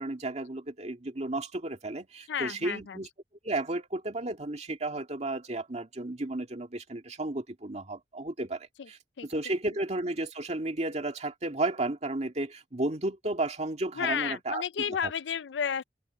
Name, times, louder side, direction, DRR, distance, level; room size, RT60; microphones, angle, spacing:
voice 1, 0.0-3.1 3.4-15.1, right 2 dB, 40° right, 2.1 m, -33 dB
voice 2, 2.3-3.0 8.8-8.9 9.2-9.3 14.0-15.8, left 7 dB, 80° left, 0.5 m, -32 dB
head